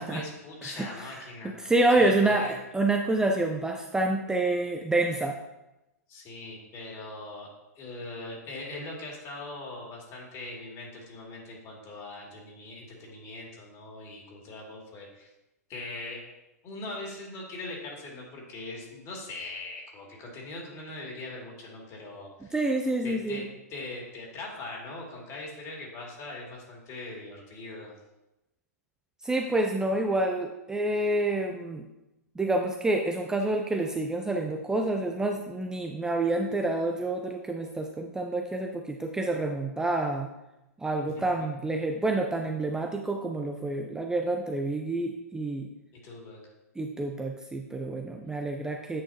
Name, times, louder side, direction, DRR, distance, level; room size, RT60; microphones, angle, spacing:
voice 1, 0.0-2.6 6.1-7.5 7.8-15.3 15.7-16.2 16.6-22.6 23.0-23.4 23.7-27.9 41.0-41.5 46.0-46.4 48.2-48.5, left 2 dB, 35° left, -2 dB, 2.4 m, -41 dB
voice 2, 1.2-5.4 22.5-23.4 29.2-31.8 32.4-40.3 40.8-45.7 46.8-49.0, right 2 dB, 5° right, 2 dB, 0.5 m, -28 dB
8.7 x 5.6 x 2.8 m, 0.94 s
hypercardioid pair, 115°, 9 cm